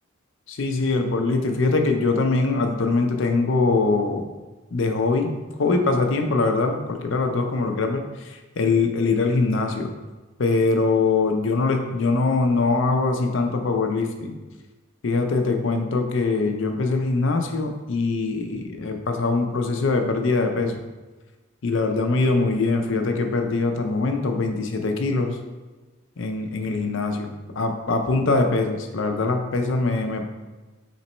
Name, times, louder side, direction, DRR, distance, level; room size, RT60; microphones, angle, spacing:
voice 1, 0.5-4.3 4.7-9.9 10.4-14.4 15.0-20.8 21.6-25.4 26.2-30.2, left 3 dB, 65° left, 5 dB, 0.5 m, -23 dB
4.1 x 3.0 x 4.2 m, 1.2 s
head